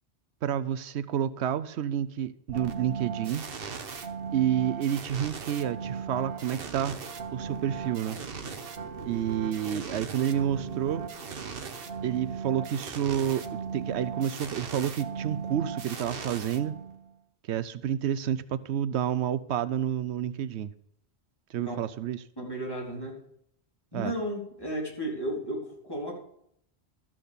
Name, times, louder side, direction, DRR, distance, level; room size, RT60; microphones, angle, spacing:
voice 1, 0.4-3.4 4.3-7.0 7.3-8.2 9.0-11.0 12.0-13.4 13.7-16.8 17.5-20.7 21.5-22.2 23.9-24.1, right 10 dB, 85° right, 0.9 m, -29 dB
sound 1, 2.5-17.1, right 6 dB, 60° right, 1.2 m, -37 dB
voice 2, 22.4-23.2 23.9-26.2, right 1 dB, 20° left, 3.5 m, -34 dB
13.0 x 6.2 x 6.8 m
omnidirectional pair, 1.1 m